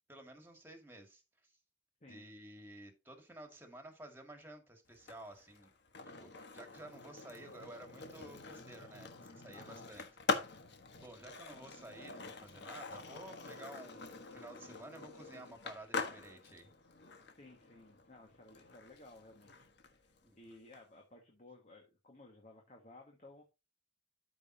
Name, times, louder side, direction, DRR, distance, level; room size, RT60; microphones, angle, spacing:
voice 1, 0.1-1.6 2.1-5.7 6.1-10.0 10.4-10.6 10.9-16.7 20.2-20.4, right 1 dB, 10° right, 2.1 m, -53 dB
Skateboard, 4.9-20.8, left 4 dB, 60° left, 1.3 m, -44 dB
voice 2, 9.5-9.9 17.4-20.1 20.3-23.4, left 2 dB, 40° left, 1.7 m, -57 dB
13.0 x 5.4 x 2.8 m
head